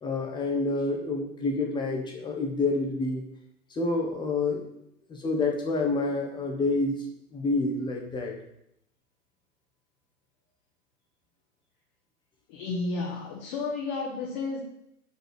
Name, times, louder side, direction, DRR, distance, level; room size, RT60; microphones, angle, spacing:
voice 1, 0.0-3.2 3.7-4.7 5.1-7.0 7.3-8.3, left 3 dB, 10° left, 1 dB, 1.4 m, -28 dB
voice 2, 12.5-14.6, left 3 dB, 30° left, -2 dB, 1.5 m, -32 dB
5.9 x 5.7 x 6.7 m, 0.77 s
figure-of-eight pair, 120°, 46 cm